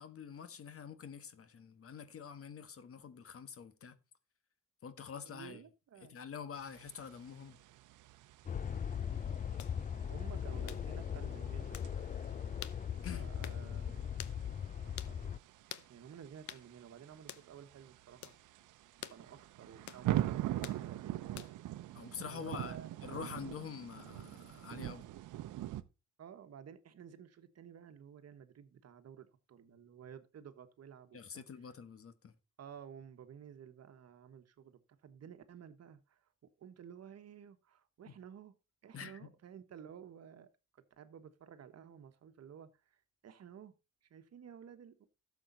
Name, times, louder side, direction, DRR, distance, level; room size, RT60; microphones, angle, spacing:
voice 1, 0.0-3.9 4.8-5.6 6.1-7.6 13.0-13.3 21.9-25.0 31.1-32.3 38.9-39.2, left 7 dB, 50° left, 1.4 m, -46 dB
voice 2, 5.2-6.2 10.1-11.8 13.1-14.1 14.8-15.2 15.9-18.3 19.1-21.5 22.3-22.9 26.2-31.4 32.6-36.3 36.6-38.5 38.8-40.5 41.0-43.7 44.0-44.9, right 8 dB, 55° right, 1.4 m, -53 dB
sound 1, 6.5-25.8, right 14 dB, 80° right, 0.8 m, -43 dB
sound 2, 8.5-15.4, left 8 dB, 30° left, 0.4 m, -39 dB
sound 3, 9.6-9.8 10.7-10.9 11.7-11.9 12.6-12.8 13.4-13.6 14.2-14.4 15.0-15.2 15.7-15.9 16.5-16.7 17.3-17.5 18.2-18.4 19.0-19.2 19.9-20.1 20.6-20.8 21.4-21.7, left 12 dB, 70° left, 0.9 m, -47 dB
12.5 x 7.3 x 4.0 m
cardioid pair, 90°, 30 cm